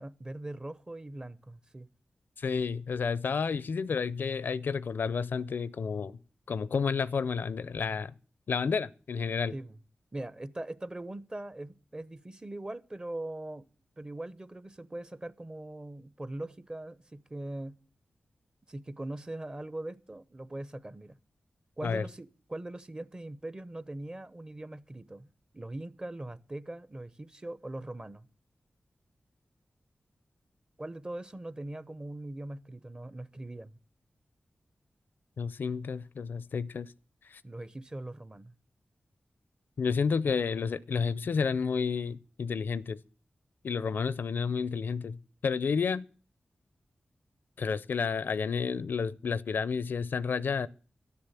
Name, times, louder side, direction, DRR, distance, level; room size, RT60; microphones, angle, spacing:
voice 1, 0.0-1.9 9.5-9.8 10.1-13.7 14.0-17.8 18.7-21.2 21.8-25.3 25.5-28.3 30.8-33.8 37.4-38.5, right 1 dB, 25° right, 0.9 m, -41 dB
voice 2, 2.4-6.2 6.5-8.1 8.5-9.5 21.8-22.0 35.4-36.9 37.3-37.4 39.8-43.0 43.6-45.2 45.4-46.1 47.6-50.7, left 5 dB, 75° left, 0.5 m, -30 dB
12.5 x 7.0 x 8.0 m
cardioid pair, 50°, 3 cm